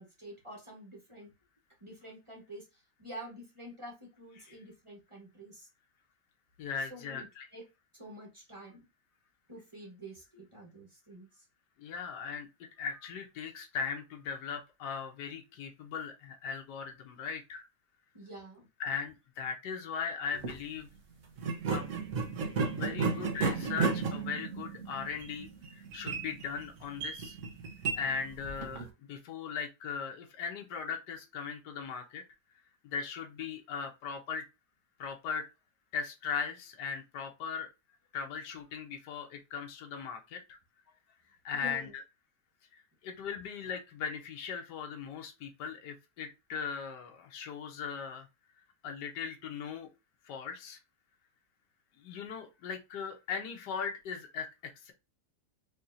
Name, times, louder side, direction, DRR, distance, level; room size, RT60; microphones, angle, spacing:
voice 1, 0.0-1.3 1.8-5.7 6.9-7.3 7.5-7.6 7.9-8.8 9.5-11.4 18.1-18.7 41.5-41.9, right 1 dB, 20° right, -1 dB, 1.3 m, -48 dB
voice 2, 6.6-7.5 11.8-17.7 18.8-20.9 21.7-21.8 22.6-25.5 25.7-27.4 27.9-32.2 32.9-34.4 35.0-35.5 35.9-37.7 38.1-40.6 41.4-41.8 42.7-48.2 48.8-49.9 50.2-50.8 52.0-54.9, left 6 dB, 80° left, 3 dB, 1.5 m, -38 dB
sound 1, 20.3-20.6 21.4-28.9, right 5 dB, 55° right, 1.0 m, -34 dB
5.3 x 2.8 x 2.7 m, 0.25 s
omnidirectional pair, 1.8 m